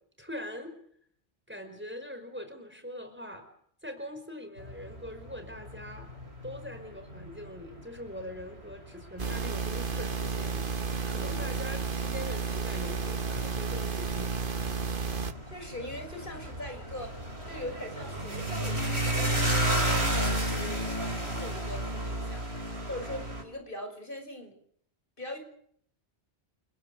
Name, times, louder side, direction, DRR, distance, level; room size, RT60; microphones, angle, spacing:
voice 1, 0.2-0.7 1.5-3.5 3.8-6.1 6.4-14.4 20.5-20.9, left 1 dB, 10° right, 7 dB, 5.0 m, -42 dB
sound 1, 4.6-23.4, right 1 dB, 75° right, 5.5 m, -34 dB
sound 2, 9.2-15.3, right 5 dB, 55° right, 1.4 m, -32 dB
voice 2, 15.5-17.2 17.5-19.5 20.1-20.5 20.8-22.5 22.9-24.5 25.2-25.4, left 1 dB, 55° left, 6 dB, 6.1 m, -41 dB
30.0 x 16.5 x 8.0 m, 0.64 s
omnidirectional pair, 1.1 m